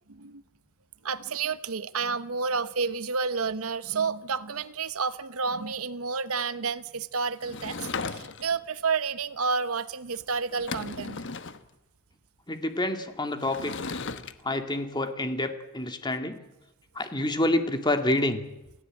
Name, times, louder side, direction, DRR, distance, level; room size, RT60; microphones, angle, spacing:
voice 1, 0.1-0.4 1.0-11.2, right 5 dB, 80° right, 14 dB, 1.0 m, -30 dB
Sliding door / Wood, 7.4-8.6 10.1-10.2 10.5-11.6 13.4-14.3, left 4 dB, 55° left, 1.2 m, -36 dB
voice 2, 12.5-14.0 14.4-16.4 16.9-18.4, left 1 dB, 20° left, 7 dB, 2.2 m, -28 dB
28.5 x 16.0 x 9.0 m, 0.95 s
head